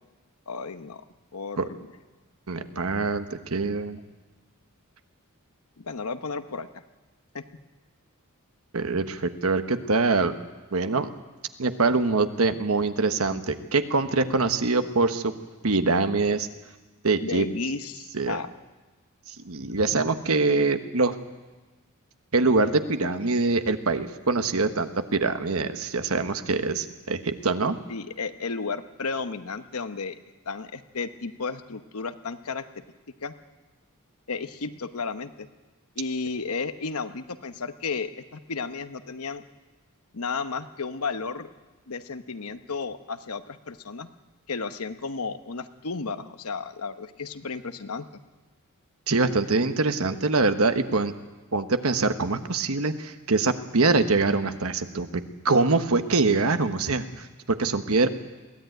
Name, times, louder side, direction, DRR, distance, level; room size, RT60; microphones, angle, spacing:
voice 1, 0.5-1.0 1.3-1.9 5.8-6.8 7.3-7.4 17.2-18.5 27.9-30.2 30.4-32.8 33.2-33.3 34.3-35.5 36.0-39.4 40.1-41.5 41.9-44.1 44.5-48.1, left 4 dB, 80° left, 10 dB, 1.0 m, -33 dB
voice 2, 2.5-4.0 8.7-10.3 10.7-11.1 11.6-15.3 15.6-16.5 17.0-17.4 18.1-18.4 19.4-21.1 22.3-27.7 49.1-51.1 51.5-58.1, right 3 dB, 70° right, 9 dB, 1.2 m, -24 dB
22.0 x 16.0 x 9.3 m, 1.2 s
head